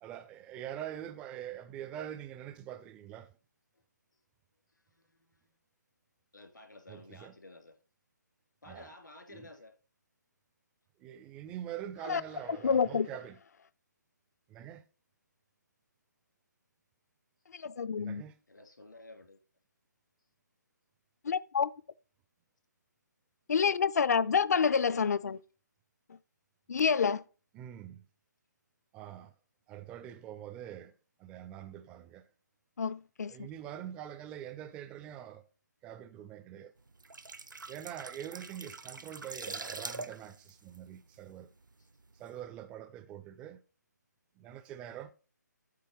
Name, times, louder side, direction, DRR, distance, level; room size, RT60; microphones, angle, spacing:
voice 1, 0.0-3.3 6.9-7.3 8.7-8.9 9.3-9.4 11.0-13.4 14.5-14.8 18.0-18.3 27.5-28.0 28.9-29.3 29.7-30.9 31.2-32.2 33.3-35.4 35.8-36.7 37.7-41.5 42.2-43.6 44.4-45.1, right 11 dB, 10° right, 0.3 m, -44 dB
voice 2, 4.7-5.4 6.3-7.7 8.6-9.7 14.5-14.6 18.5-19.4 34.4-34.5 41.8-41.9 44.9-45.0, left 2 dB, 80° left, 2.6 m, -53 dB
voice 3, 12.5-13.1 17.5-18.2 21.2-21.7 23.5-25.4 26.7-27.2 32.8-33.5, left 6 dB, 60° left, 0.4 m, -28 dB
sound 1, 36.9-41.7 42.0-42.2, right 3 dB, 80° right, 0.8 m, -44 dB
8.4 x 3.4 x 6.4 m
figure-of-eight pair, 150°, 10 cm